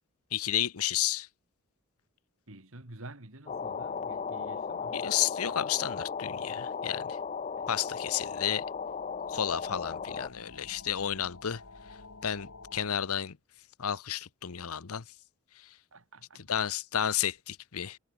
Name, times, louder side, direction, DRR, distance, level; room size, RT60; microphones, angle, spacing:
voice 1, 0.3-1.3 4.9-7.2 7.7-8.6 9.3-11.6 11.9-13.4 13.8-15.0 15.6-15.8 16.5-18.0, left 10 dB, 80° left, 0.8 m, -32 dB
voice 2, 2.5-5.1 7.6-7.7 15.9-16.5, right 2 dB, 70° right, 2.8 m, -49 dB
sound 1, 3.5-10.3, left 6 dB, 30° left, 0.3 m, -36 dB
sound 2, 6.2-12.9, left 3 dB, 60° left, 2.2 m, -52 dB
head